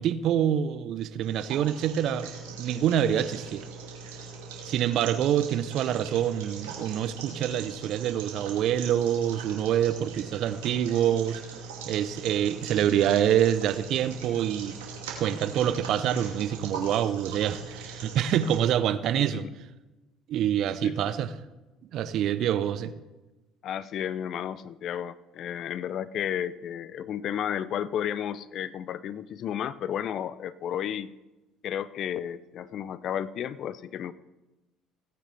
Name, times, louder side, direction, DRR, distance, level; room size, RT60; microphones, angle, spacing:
voice 1, 0.0-2.3 2.6-3.7 4.6-11.4 11.9-14.8 15.2-19.4 20.3-21.3 21.9-22.9, right 10 dB, 60° right, 13 dB, 0.8 m, -26 dB
sound 1, 1.2-18.6, right 4 dB, 85° right, 2.6 m, -41 dB
voice 2, 19.2-19.5 20.8-21.2 23.6-31.1 31.6-34.1, left 9 dB, 55° left, 17 dB, 0.6 m, -33 dB
17.5 x 9.0 x 3.4 m, 1.1 s
hypercardioid pair, 65°, 0 cm